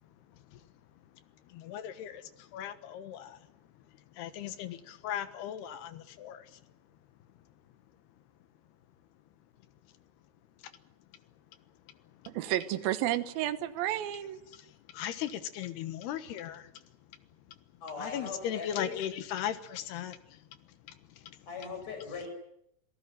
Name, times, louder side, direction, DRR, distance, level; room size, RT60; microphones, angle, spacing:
voice 1, 0.3-0.6 1.5-3.4 4.1-6.6 12.2-12.3 14.5-16.8 18.0-20.4 20.9-21.4, left 10 dB, 75° left, 12 dB, 3.3 m, -38 dB
voice 2, 12.3-14.4, right 13 dB, 70° right, 12 dB, 2.7 m, -31 dB
voice 3, 17.8-18.9 21.5-22.3, left 5 dB, 40° left, 5 dB, 6.5 m, -40 dB
27.0 x 17.5 x 9.2 m, 0.78 s
omnidirectional pair, 4.7 m